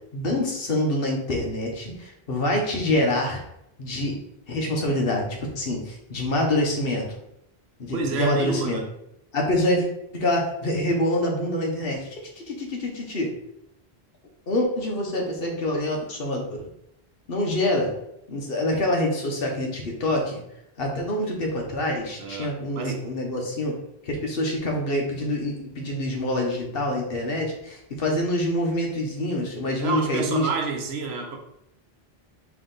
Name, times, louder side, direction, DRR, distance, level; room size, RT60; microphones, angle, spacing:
voice 1, 0.1-3.4 3.8-4.2 4.5-7.2 7.8-8.8 9.3-9.9 10.1-13.3 14.5-16.7 17.3-18.0 18.3-20.4 20.8-23.7 24.0-30.5, left 1 dB, 65° left, 1 dB, 1.2 m, -26 dB
voice 2, 7.9-8.8 22.2-23.1 29.8-31.4, right 4 dB, 80° right, 4 dB, 1.0 m, -29 dB
4.7 x 2.9 x 3.9 m, 0.81 s
omnidirectional pair, 1.1 m